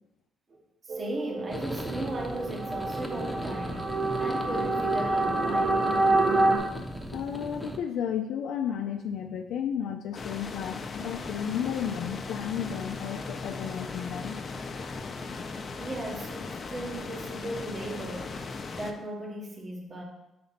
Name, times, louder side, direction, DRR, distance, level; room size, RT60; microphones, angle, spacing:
voice 1, 0.8-3.8 4.2-5.9 15.8-18.4 18.8-20.0, right 1 dB, 40° right, 0 dB, 1.1 m, -37 dB
sound 1, 0.9-6.6, right 2 dB, 55° right, 1.8 m, -27 dB
sound 2, 1.5-7.8, equal, ahead, 0.9 m, -38 dB
voice 2, 7.1-14.4, left 8 dB, 80° left, 4 dB, 0.4 m, -33 dB
sound 3, 10.1-18.9, left 4 dB, 45° left, 0.7 m, -38 dB
5.6 x 4.2 x 5.7 m, 0.94 s
cardioid pair, 90°, 0 cm